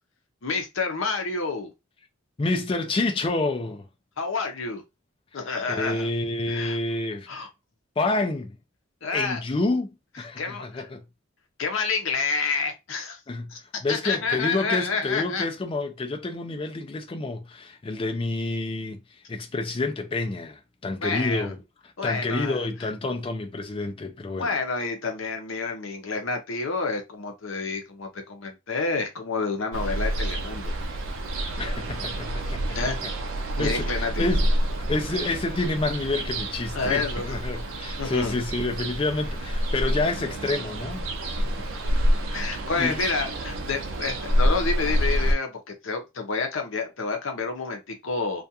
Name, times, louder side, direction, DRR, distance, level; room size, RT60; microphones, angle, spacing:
voice 1, 0.4-1.7 4.2-4.8 5.3-6.1 6.5-6.8 7.3-7.5 9.0-9.4 10.4-10.9 11.6-13.2 13.5-13.6 13.9-15.5 21.0-21.5 22.0-22.9 24.4-30.7 32.7-33.0 33.6-34.3 36.7-37.4 38.0-38.4 42.3-48.4, left 4 dB, 65° left, 0.7 m, -29 dB
voice 2, 2.4-3.8 5.7-7.3 8.0-8.5 9.1-9.9 10.2-11.0 13.3-13.5 13.8-19.0 19.3-21.6 22.0-24.6 31.6-32.8 33.0-33.1 33.6-34.5 34.9-41.0 41.6-41.7 42.3-42.5 42.7-43.0, left 2 dB, 25° left, 0.3 m, -28 dB
Ocean, 29.7-45.3, equal, 65° right, 0.4 m, -28 dB
2.4 x 2.3 x 2.7 m
head